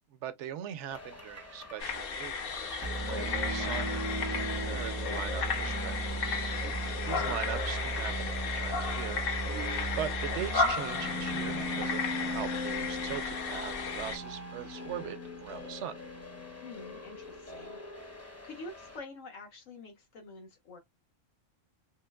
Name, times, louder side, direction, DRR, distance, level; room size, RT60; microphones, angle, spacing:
voice 1, 0.1-6.0 7.0-9.2 10.0-16.0, right 10 dB, 70° right, 0.9 m, -41 dB
sound 1, 0.9-19.0, right 1 dB, 15° left, 0.7 m, -37 dB
sound 2, 1.8-14.2, left 4 dB, 55° left, 0.8 m, -34 dB
voice 2, 16.6-20.8, left 3 dB, 75° left, 1.4 m, -47 dB
3.1 x 3.0 x 2.3 m
omnidirectional pair, 1.3 m